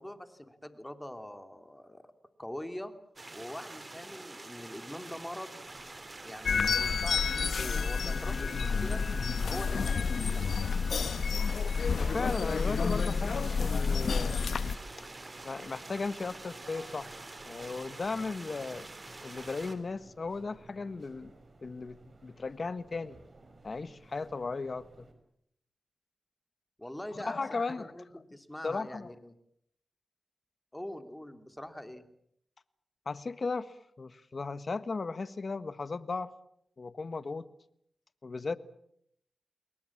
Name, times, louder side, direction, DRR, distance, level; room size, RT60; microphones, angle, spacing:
voice 1, 0.0-2.1 2.4-2.9 3.3-5.6 6.2-9.0 9.5-10.5 26.8-29.3 30.7-32.1, left 1 dB, 10° left, 8 dB, 2.9 m, -43 dB
sound 1, 3.2-19.7, right 2 dB, 35° right, 3.8 m, -46 dB
sound 2, 5.6-25.1, right 2 dB, 50° right, 5.4 m, -56 dB
sound 3, 6.4-14.8, left 5 dB, 80° left, 1.1 m, -29 dB
voice 2, 12.0-14.3 15.0-15.1 15.4-17.1 17.4-18.9 19.2-21.3 21.6-23.2 23.6-25.1 27.1-27.9 28.6-29.1 33.0-36.3 36.8-37.5 38.2-38.6, left 4 dB, 55° left, 14 dB, 1.5 m, -36 dB
29.0 x 22.0 x 7.4 m, 0.73 s
cardioid pair, 60°, 0 cm